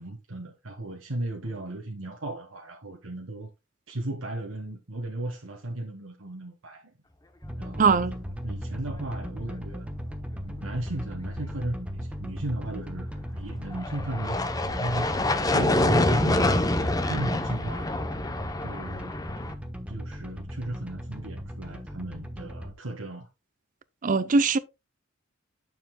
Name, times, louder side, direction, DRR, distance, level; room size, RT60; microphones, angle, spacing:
voice 1, 0.0-3.5 3.9-6.9 7.6-8.1 8.4-9.9 10.4-14.5 14.8-15.1 15.5-17.9 18.6-19.1 19.9-23.3, right 1 dB, 80° right, 1.2 m, -35 dB
sound 1, 7.4-22.7, equal, 5° right, 1.0 m, -37 dB
voice 2, 7.8-8.1 24.0-24.6, right 4 dB, 40° right, 0.5 m, -21 dB
sound 2, 13.7-19.5, left 2 dB, 20° left, 0.7 m, -26 dB
9.6 x 6.8 x 2.2 m
head